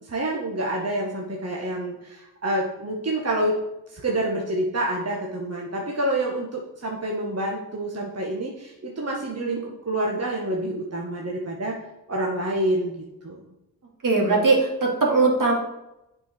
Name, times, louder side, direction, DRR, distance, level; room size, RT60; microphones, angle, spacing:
voice 1, 0.0-3.5 3.9-11.8 12.1-13.4, right 1 dB, 45° right, -1 dB, 1.9 m, -27 dB
voice 2, 14.0-15.5, right 3 dB, 60° right, -1 dB, 2.8 m, -20 dB
8.2 x 5.6 x 6.2 m, 0.90 s
supercardioid pair, 40°, 36 cm